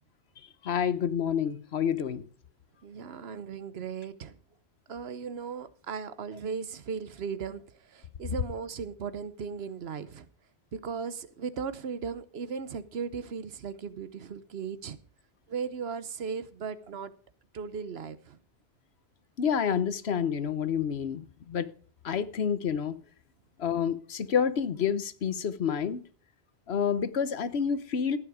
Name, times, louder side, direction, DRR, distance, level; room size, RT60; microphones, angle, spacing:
voice 1, 0.6-2.2 19.4-21.7 22.0-23.0 23.6-26.0 26.7-28.2, left 7 dB, 75° left, 1.2 m, -28 dB
voice 2, 2.8-4.4 4.9-10.3 10.7-15.0 15.5-17.1 17.5-18.4, right 6 dB, 75° right, 1.1 m, -37 dB
14.5 x 9.1 x 5.0 m
omnidirectional pair, 1.1 m